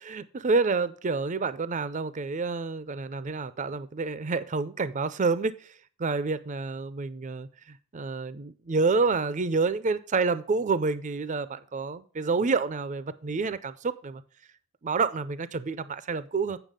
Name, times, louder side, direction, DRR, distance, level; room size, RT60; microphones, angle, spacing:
voice 1, 0.1-5.7 6.0-14.2 14.8-16.6, right 4 dB, 35° right, 0.5 m, -28 dB
9.1 x 5.9 x 5.0 m
head